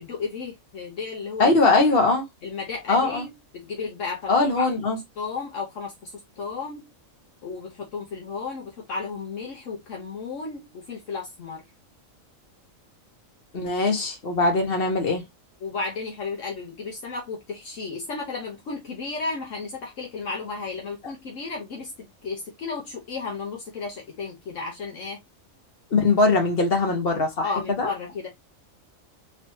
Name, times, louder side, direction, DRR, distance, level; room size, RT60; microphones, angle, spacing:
voice 1, 0.0-1.5 2.4-3.3 3.5-4.7 4.9-6.9 7.4-11.6 15.6-25.2 27.4-28.3, left 4 dB, 70° left, 1.2 m, -33 dB
voice 2, 1.4-2.2 2.9-3.2 4.3-5.0 13.5-15.3 25.9-27.5 27.8-27.9, left 3 dB, 45° left, 1.4 m, -21 dB
3.9 x 3.0 x 2.7 m
omnidirectional pair, 1.4 m